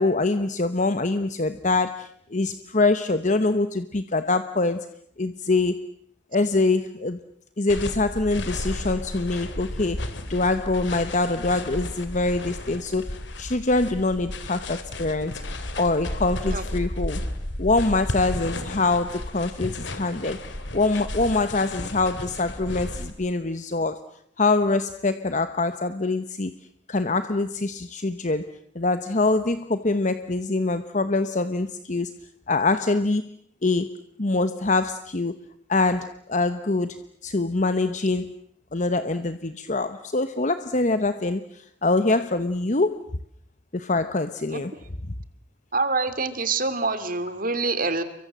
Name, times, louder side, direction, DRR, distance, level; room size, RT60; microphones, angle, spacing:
voice 1, 0.0-4.9 5.2-5.9 6.3-7.2 7.6-10.0 10.3-15.4 15.8-17.2 17.6-20.4 20.7-24.0 24.4-26.5 26.9-32.2 32.5-33.3 33.6-33.9 34.2-35.4 35.7-38.4 38.7-43.0 43.7-44.7, left 3 dB, 40° left, 10 dB, 1.0 m, -24 dB
sound 1, 7.7-23.1, left 1 dB, 80° left, 2.9 m, -33 dB
voice 2, 45.7-48.0, right 3 dB, 50° right, 11 dB, 2.5 m, -26 dB
29.5 x 23.5 x 7.5 m, 0.66 s
head